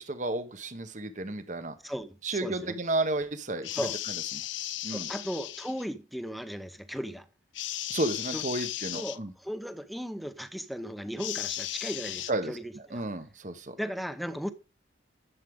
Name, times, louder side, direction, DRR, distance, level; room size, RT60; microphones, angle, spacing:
voice 1, 0.0-1.8 2.2-3.8 4.8-5.1 7.9-9.3 12.3-12.5 12.9-13.7, right 2 dB, 40° right, 1.1 m, -32 dB
voice 2, 1.8-2.8 3.7-4.0 4.8-7.3 8.3-13.0 13.8-14.5, equal, ahead, 0.7 m, -37 dB
sound 1, 3.6-5.8 7.5-9.2 11.2-12.3, left 15 dB, 75° left, 0.5 m, -36 dB
11.0 x 7.4 x 3.7 m
head